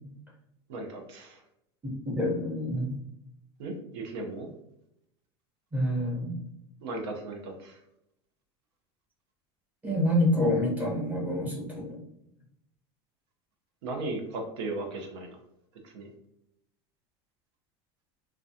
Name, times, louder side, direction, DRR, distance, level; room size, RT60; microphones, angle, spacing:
voice 1, 0.7-1.4 3.6-4.5 6.8-7.8 13.8-15.3 15.8-16.1, right 2 dB, 80° right, 3 dB, 0.7 m, -36 dB
voice 2, 1.8-2.9 5.7-6.4 9.8-12.0, left 1 dB, 10° right, -3 dB, 0.9 m, -27 dB
2.2 x 2.2 x 2.6 m, 0.79 s
supercardioid pair, 125°, 14 cm